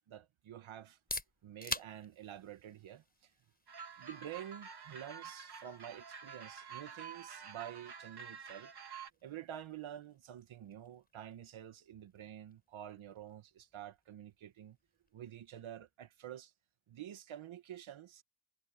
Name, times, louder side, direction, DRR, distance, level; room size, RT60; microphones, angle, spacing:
voice 1, 0.1-1.0 1.4-3.0 4.0-8.7 9.2-14.8 15.1-16.5 16.9-18.2, right 11 dB, 85° right, 2.2 m, -49 dB
sound 1, 0.8-16.5, left 2 dB, 20° left, 5.4 m, -51 dB
sound 2, 3.7-9.1, right 6 dB, 55° right, 3.5 m, -49 dB
cardioid pair, 75°, 46 cm